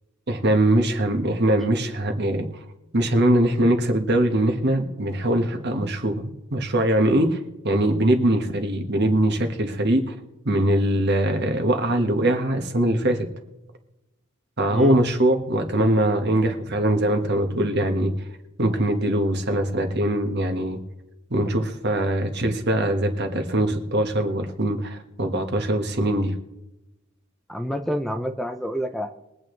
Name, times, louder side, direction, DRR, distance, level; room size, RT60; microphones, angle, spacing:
voice 1, 0.3-2.5 2.9-7.4 7.6-10.1 10.4-13.3 14.6-18.1 18.6-20.8 21.3-26.3, right 1 dB, 50° right, 5 dB, 1.5 m, -22 dB
voice 2, 27.5-29.1, equal, ahead, 6 dB, 0.6 m, -28 dB
22.5 x 8.8 x 3.3 m, 0.98 s
head